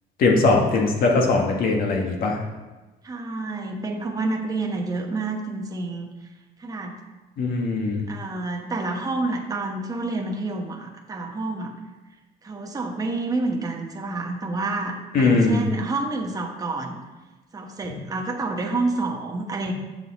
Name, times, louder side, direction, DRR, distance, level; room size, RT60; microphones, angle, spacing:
voice 1, 0.2-2.4 7.4-8.1 15.1-15.6, left 3 dB, 60° left, 0 dB, 1.5 m, -20 dB
voice 2, 3.0-6.1 6.6-6.9 8.1-11.7 12.4-17.0 17.5-19.7, right 2 dB, 20° right, 0 dB, 1.1 m, -28 dB
6.9 x 6.7 x 4.1 m, 1.2 s
cardioid pair, 110°, 17 cm